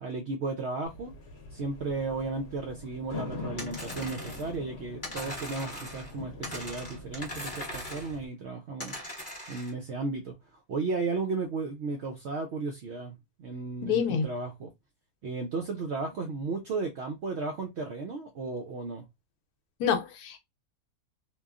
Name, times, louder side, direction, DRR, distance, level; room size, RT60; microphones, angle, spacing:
voice 1, 0.0-1.1 1.5-8.9 9.5-14.7 15.2-19.1, right 3 dB, 75° right, 0.6 m, -34 dB
sound 1, 0.9-8.3, left 2 dB, 50° left, 0.9 m, -43 dB
sound 2, 3.6-4.5 5.0-6.1 6.4-8.2 8.8-9.7, left 1 dB, 10° left, 1.2 m, -40 dB
voice 2, 13.8-14.3 19.8-20.4, left 7 dB, 75° left, 1.1 m, -27 dB
2.9 x 2.3 x 2.4 m
omnidirectional pair, 1.7 m